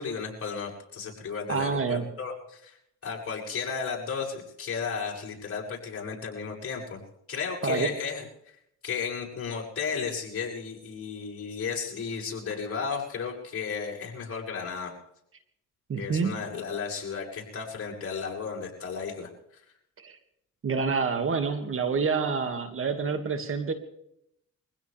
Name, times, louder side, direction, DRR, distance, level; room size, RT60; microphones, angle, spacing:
voice 1, 0.0-2.8 3.0-7.0 7.3-8.2 8.8-14.9 16.0-19.6, left 5 dB, 50° left, -2 dB, 6.9 m, -34 dB
voice 2, 1.5-2.1 7.6-7.9 15.9-16.4 20.0-20.2 20.6-23.7, right 5 dB, 45° right, 6 dB, 2.3 m, -27 dB
24.5 x 16.5 x 3.5 m, 0.75 s
cardioid pair, 90°, 30 cm